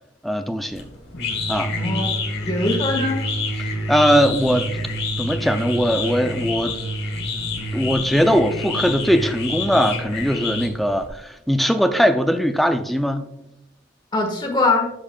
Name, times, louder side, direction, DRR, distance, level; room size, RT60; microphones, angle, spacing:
voice 1, 0.2-0.9 1.5-1.7 3.9-4.8 5.2-6.8 7.7-13.3, equal, ahead, 0.4 m, -20 dB
sound 1, 0.7-11.1, left 2 dB, 60° left, 1.3 m, -27 dB
voice 2, 1.7-2.2 2.4-3.2 14.1-14.9, left 2 dB, 25° left, 1.5 m, -22 dB
11.5 x 5.1 x 2.3 m
head